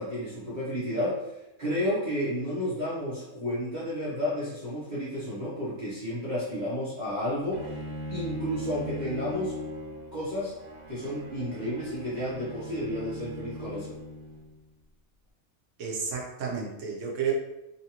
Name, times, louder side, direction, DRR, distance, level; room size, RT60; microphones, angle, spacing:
voice 1, 0.0-7.6 8.1-9.6 10.1-10.5 10.9-13.9, equal, 40° right, -10 dB, 0.9 m, -31 dB
Bowed string instrument, 7.5-14.6, left 1 dB, 55° right, 1.2 m, -39 dB
voice 2, 15.8-17.3, right 7 dB, 70° right, -1 dB, 1.0 m, -31 dB
3.1 x 2.6 x 2.8 m, 0.93 s
omnidirectional pair, 1.4 m